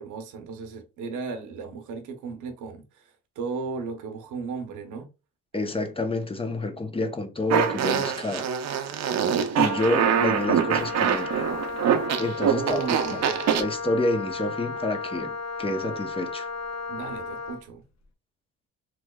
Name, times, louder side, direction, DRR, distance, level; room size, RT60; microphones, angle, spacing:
voice 1, 0.0-5.1 12.4-13.5 16.9-17.8, right 5 dB, 85° right, 0.8 m, -35 dB
voice 2, 5.5-8.7 9.6-11.5 12.2-12.8 13.1-13.2 13.6-16.5, left 2 dB, 20° left, 0.7 m, -28 dB
Fart, 7.5-13.6, right 8 dB, 60° right, 0.6 m, -24 dB
Wind instrument woodwind instrument, 9.6-17.7, left 4 dB, 60° left, 0.7 m, -34 dB
3.6 x 3.0 x 2.2 m
cardioid pair, 90°, 30 cm